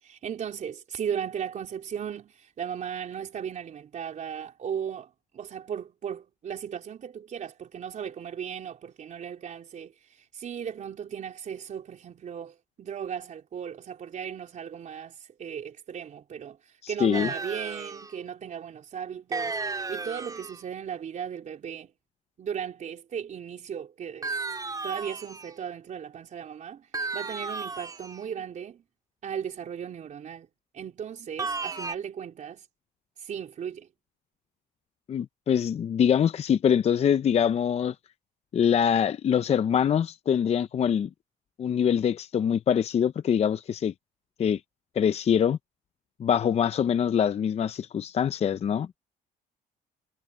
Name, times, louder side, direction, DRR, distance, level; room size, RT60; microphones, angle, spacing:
voice 1, 0.0-21.9 22.4-24.5 24.8-28.8 29.2-30.5 30.7-32.7 33.2-33.9, right 8 dB, 45° right, 4.0 m, -36 dB
voice 2, 16.8-17.3 35.1-37.9 38.5-41.1 41.6-43.9 44.4-44.6 45.0-45.6 46.2-49.0, left 8 dB, 40° left, 0.6 m, -24 dB
sound 1, 17.1-18.1 19.3-20.6 24.2-25.5 26.9-28.2 31.4-32.0, right 4 dB, 20° right, 3.5 m, -33 dB
cardioid pair, 110°, 17 cm